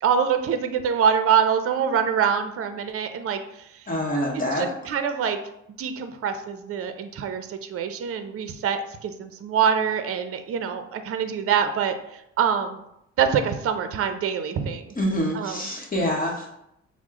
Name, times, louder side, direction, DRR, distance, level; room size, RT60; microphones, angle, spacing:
voice 1, 0.0-3.7 4.6-5.4 5.8-12.8 13.2-14.9 15.4-15.6, right 7 dB, 50° right, 8 dB, 0.6 m, -25 dB
voice 2, 3.9-4.7 14.9-16.5, equal, 30° left, -2 dB, 1.0 m, -26 dB
6.1 x 2.1 x 3.6 m, 0.79 s
cardioid pair, 90°, 30 cm